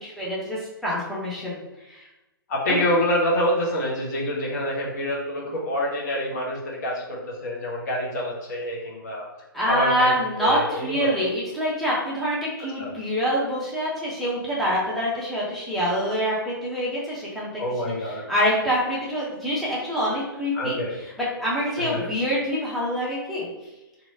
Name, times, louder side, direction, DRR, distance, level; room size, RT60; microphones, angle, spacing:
voice 1, 0.0-1.6 1.9-2.0 2.7-2.8 9.5-17.6 18.3-20.8 21.4-23.5, equal, ahead, -8 dB, 0.9 m, -25 dB
voice 2, 2.5-9.3 9.7-10.1 10.4-11.1 12.8-12.9 17.6-18.3 20.5-21.0 21.8-22.1, equal, 50° left, -2 dB, 0.9 m, -26 dB
3.0 x 2.7 x 2.7 m, 1.0 s
figure-of-eight pair, 120°, 12 cm